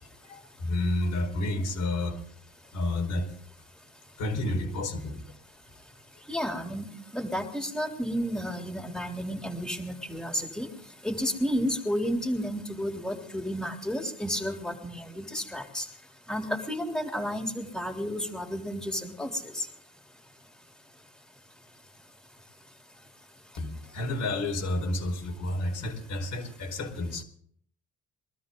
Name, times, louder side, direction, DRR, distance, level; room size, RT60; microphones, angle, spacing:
voice 1, 0.0-2.2 2.7-3.3 4.2-5.2 23.6-27.2, left 2 dB, 80° left, 1 dB, 4.8 m, -30 dB
voice 2, 6.3-6.9 7.1-10.7 11.0-15.9 16.3-19.7, equal, ahead, 2 dB, 3.5 m, -31 dB
23.5 x 13.0 x 3.9 m, 0.62 s
cardioid pair, 90°, 30 cm